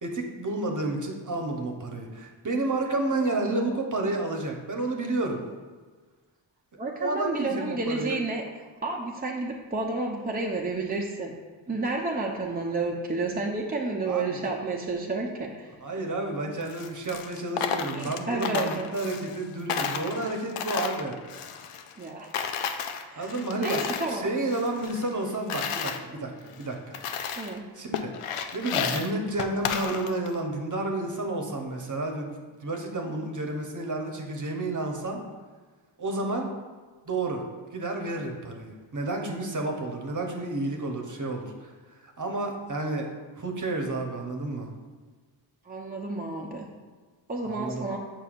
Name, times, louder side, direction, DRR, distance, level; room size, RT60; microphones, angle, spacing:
voice 1, 0.0-5.4 7.0-8.2 14.1-14.4 15.8-21.2 23.2-23.8 24.1-27.0 27.7-28.1 28.5-35.2 36.0-36.5 37.1-37.4 37.7-41.7 42.0-43.1 43.4-44.7 47.4-48.0, right 2 dB, 35° right, 2 dB, 1.0 m, -31 dB
voice 2, 6.8-8.4 8.8-11.3 11.7-15.7 17.9-18.9 22.0-22.3 23.1-24.3 27.4-27.6 33.0-33.3 45.6-46.7 47.3-48.0, right 3 dB, 20° right, -2 dB, 0.7 m, -31 dB
Coin (dropping), 16.6-19.4 19.7-22.1 22.3-24.2 24.5-26.0 26.5-26.6 26.9-27.6 27.9-30.4, left 7 dB, 85° left, 0.6 m, -32 dB
7.0 x 5.5 x 2.5 m, 1.4 s
cardioid pair, 50°, 50 cm